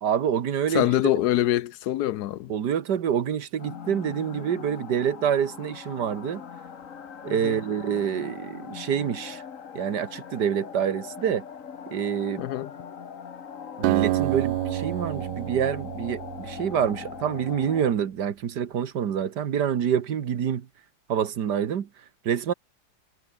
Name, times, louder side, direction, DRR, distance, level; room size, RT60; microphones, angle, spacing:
voice 1, 0.0-0.9 2.5-6.4 7.2-9.4 9.8-11.4 11.9-12.5 13.8-20.7 21.1-21.9 22.3-22.5, right 8 dB, 65° right, 1.8 m, -27 dB
voice 2, 0.7-2.5 7.3-7.6 12.4-12.7, left 13 dB, 70° left, 1.1 m, -25 dB
sound 1, 3.6-17.9, left 7 dB, 45° left, 1.6 m, -41 dB
Acoustic guitar, 13.8-17.4, right 15 dB, 90° right, 1.4 m, -28 dB
omnidirectional pair, 2.1 m